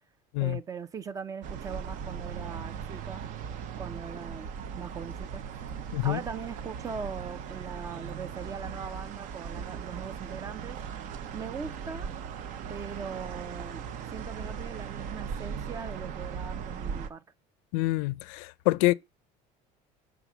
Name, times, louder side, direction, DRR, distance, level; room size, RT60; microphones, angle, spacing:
voice 1, 0.4-3.2 3.8-4.5 4.8-10.8 11.3-12.1 12.7-13.8 14.1-17.2, right 6 dB, 20° right, 0.5 m, -40 dB
sound 1, 1.4-17.1, right 7 dB, 55° right, 0.8 m, -38 dB
voice 2, 17.7-18.9, left 19 dB, 80° left, 0.5 m, -26 dB
7.1 x 3.5 x 6.1 m
cardioid pair, 150°, 16 cm